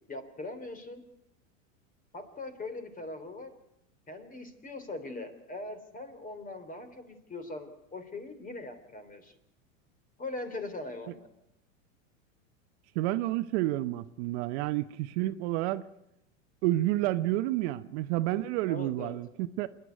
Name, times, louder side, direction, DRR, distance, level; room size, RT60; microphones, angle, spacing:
voice 1, 0.1-1.0 2.1-3.5 4.1-9.4 10.2-11.3 18.7-19.2, left 2 dB, 20° left, 3.4 m, -41 dB
voice 2, 12.9-15.8 16.6-19.7, right 16 dB, 55° right, 0.9 m, -30 dB
27.0 x 10.5 x 9.4 m
hypercardioid pair, 105°, 40 cm